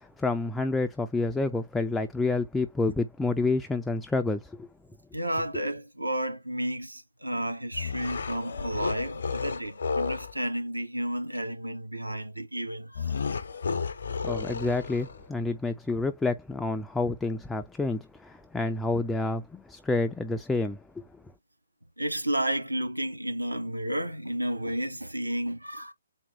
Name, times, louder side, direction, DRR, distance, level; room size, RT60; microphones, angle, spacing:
voice 1, 0.0-4.7 14.2-21.0, left 3 dB, 5° left, 0.3 m, -29 dB
voice 2, 5.1-13.1 22.0-25.9, right 1 dB, 90° right, 1.1 m, -32 dB
sound 1, 7.7-10.4 13.0-15.3, left 5 dB, 60° left, 0.7 m, -32 dB
4.3 x 2.2 x 3.7 m
figure-of-eight pair, 130°, 0 cm